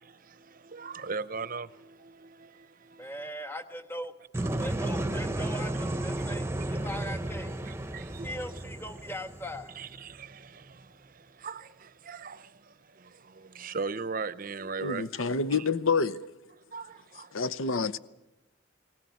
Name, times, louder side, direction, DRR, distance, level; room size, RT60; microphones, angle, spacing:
voice 1, 0.0-3.1 4.5-4.6 7.6-8.6 9.7-15.7 16.5-17.3, right 4 dB, 45° right, 0.7 m, -40 dB
voice 2, 3.0-4.1 4.6-7.5 8.2-9.7, equal, 10° left, 1.2 m, -39 dB
sound 1, 4.3-10.2, right 1 dB, 10° right, 0.8 m, -33 dB
voice 3, 14.8-16.2 17.3-18.0, left 4 dB, 85° left, 0.9 m, -28 dB
20.0 x 18.5 x 9.4 m
head